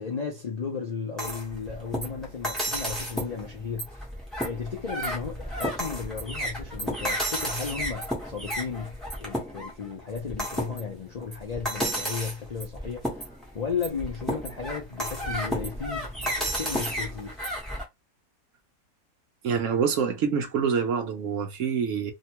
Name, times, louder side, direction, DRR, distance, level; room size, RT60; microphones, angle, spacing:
voice 1, 0.0-4.1 4.4-17.4, left 5 dB, 55° left, 0.4 m, -34 dB
sound 1, 1.2-17.8, equal, ahead, 0.9 m, -32 dB
voice 2, 19.4-22.1, right 6 dB, 70° right, 0.9 m, -26 dB
2.8 x 2.2 x 2.8 m
omnidirectional pair, 1.5 m